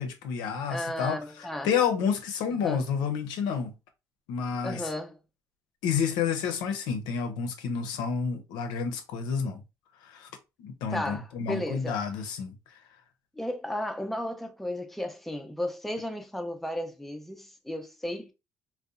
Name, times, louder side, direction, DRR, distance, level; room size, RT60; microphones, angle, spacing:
voice 1, 0.0-1.2 1.6-3.7 4.3-4.9 5.8-9.6 10.0-10.3 10.6-12.8, left 6 dB, 85° left, 0.5 m, -30 dB
voice 2, 0.7-1.7 2.6-2.8 4.6-5.2 10.9-12.0 13.4-18.3, left 1 dB, 5° left, 0.5 m, -34 dB
2.7 x 2.1 x 2.4 m
supercardioid pair, 70°, 7 cm